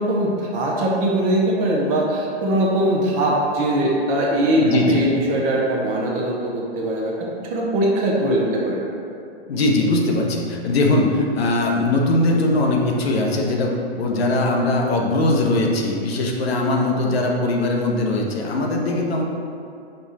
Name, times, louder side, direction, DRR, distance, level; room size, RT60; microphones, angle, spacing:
voice 1, 0.0-7.1 7.5-8.8, right 1 dB, 25° right, -3 dB, 0.7 m, -21 dB
voice 2, 4.6-5.0 9.5-13.7 14.0-19.2, left 2 dB, 70° left, 0 dB, 0.9 m, -20 dB
5.3 x 2.4 x 4.1 m, 2.5 s
hypercardioid pair, 130°, 32 cm